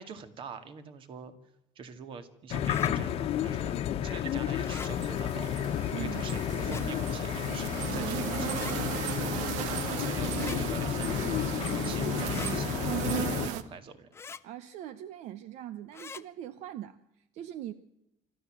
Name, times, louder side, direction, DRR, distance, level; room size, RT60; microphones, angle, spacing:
voice 1, 0.0-1.3 1.8-3.8 4.0-8.8 9.2-14.1, right 6 dB, 45° right, 10 dB, 2.1 m, -45 dB
sound 1, 2.5-13.5, left 10 dB, 55° left, 1.2 m, -32 dB
sound 2, 2.6-2.9 4.6-4.9 6.5-6.9 8.5-8.8 10.3-10.6 12.3-12.6 14.1-14.4 15.9-16.2, left 5 dB, 20° left, 0.7 m, -43 dB
sound 3, 4.6-13.6, right 11 dB, 90° right, 1.3 m, -36 dB
voice 2, 5.9-6.3 14.4-17.7, right 11 dB, 70° right, 14 dB, 0.9 m, -41 dB
26.0 x 13.5 x 7.6 m, 0.85 s
cardioid pair, 155°, 12 cm